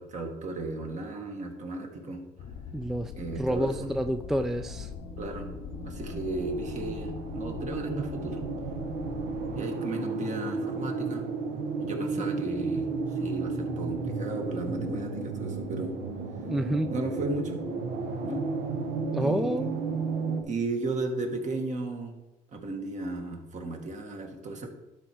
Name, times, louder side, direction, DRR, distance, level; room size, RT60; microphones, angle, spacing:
voice 1, 0.0-2.2 3.1-3.9 5.2-5.5 5.8-8.4 9.5-11.2 11.8-16.0 16.9-17.7 18.2-18.5 19.2-19.7 20.4-22.1 22.5-24.7, right 2 dB, 45° right, 3 dB, 1.9 m, -35 dB
sound 1, 2.4-9.6, left 7 dB, 75° left, 0.7 m, -42 dB
voice 2, 2.7-4.9 12.2-12.5 16.5-16.9 19.1-19.8, equal, ahead, 8 dB, 0.3 m, -29 dB
sound 2, 4.2-20.4, right 4 dB, 80° right, 1.3 m, -33 dB
11.5 x 5.0 x 4.6 m, 1.0 s
cardioid pair, 110°, 17 cm